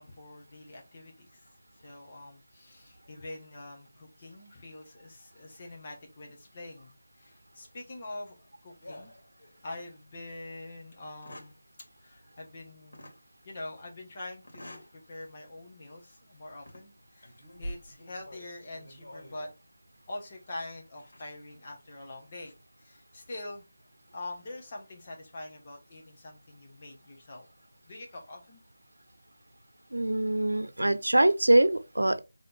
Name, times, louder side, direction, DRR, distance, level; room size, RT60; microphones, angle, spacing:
voice 1, 0.0-9.1 9.6-11.5 12.0-13.1 13.4-19.5 20.1-23.6 24.1-27.5 27.8-28.6, left 2 dB, 30° left, 1.6 m, -44 dB
sound 1, 8.8-9.9 10.3-10.4 11.0-11.6 12.9-13.2 14.4-15.0 15.4-15.6 16.5-16.9 17.2-19.5 21.0-21.2 22.2-22.5, equal, 60° left, 2.4 m, -46 dB
voice 2, 29.9-32.2, right 1 dB, 85° right, 0.7 m, -23 dB
4.0 x 3.7 x 3.6 m
figure-of-eight pair, 165°, 0 cm